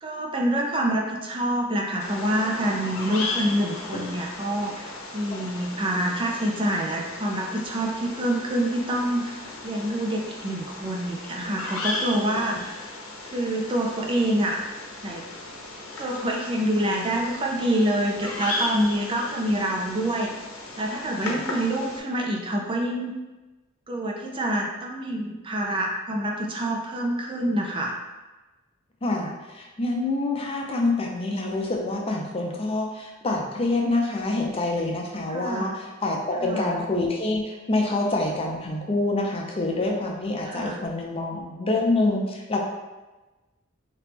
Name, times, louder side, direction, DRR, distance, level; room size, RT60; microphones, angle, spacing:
voice 1, 0.0-9.4 9.6-12.9 13.2-14.6 15.0-15.2 16.0-20.3 20.8-23.1 23.9-28.0 35.3-35.7 36.3-36.7 40.4-40.8, right 1 dB, 25° right, 0 dB, 0.4 m, -26 dB
Bird vocalization bird call bird song, 2.0-22.0, left 2 dB, 80° left, 0.7 m, -36 dB
voice 2, 29.0-42.6, left 2 dB, 30° left, 0 dB, 0.5 m, -26 dB
3.1 x 2.9 x 3.3 m, 1.1 s
head